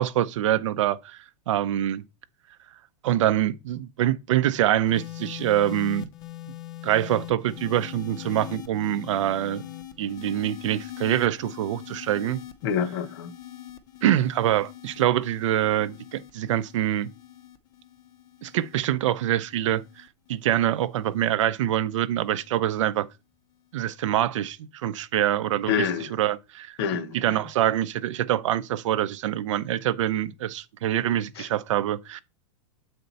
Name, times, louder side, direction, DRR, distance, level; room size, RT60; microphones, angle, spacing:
voice 1, 0.0-2.0 3.0-6.1 6.8-9.6 10.0-12.4 14.0-17.1 18.4-23.1 23.7-26.8 27.1-32.2, right 12 dB, 60° right, 0.6 m, -25 dB
sound 1, 4.9-21.3 22.2-22.6, left 13 dB, 20° left, 0.5 m, -42 dB
voice 2, 12.6-13.3 25.7-26.1 26.8-27.4 31.4-31.5, left 7 dB, 45° left, 0.9 m, -27 dB
7.9 x 4.4 x 4.0 m
supercardioid pair, 170°, 18 cm